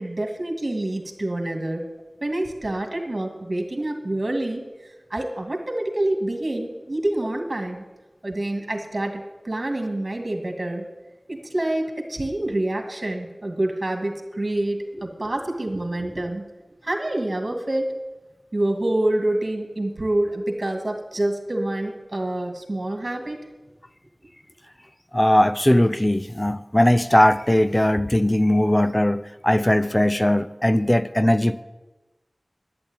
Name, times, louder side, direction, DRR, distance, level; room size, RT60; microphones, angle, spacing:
voice 1, 0.0-1.9 2.2-4.6 5.1-7.8 8.2-10.9 11.3-16.4 16.8-18.0 18.5-23.4, right 1 dB, 50° right, 3 dB, 2.3 m, -27 dB
voice 2, 25.1-31.6, left 1 dB, 20° left, 13 dB, 0.7 m, -19 dB
10.5 x 10.0 x 8.8 m, 1.1 s
wide cardioid pair, 50°, 0 cm